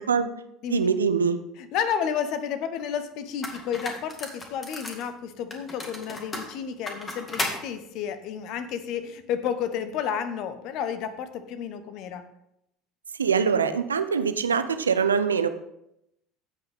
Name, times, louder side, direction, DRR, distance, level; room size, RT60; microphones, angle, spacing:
voice 1, 0.7-1.4 13.2-15.5, right 6 dB, 85° right, 10 dB, 0.6 m, -23 dB
voice 2, 1.6-12.2, left 8 dB, 55° left, 11 dB, 1.0 m, -31 dB
sound 1, 2.8-2.9 3.4-5.1 5.5-7.6, left 2 dB, 25° left, 2.2 m, -34 dB
16.0 x 5.6 x 3.6 m, 0.79 s
figure-of-eight pair, 70°, 0 cm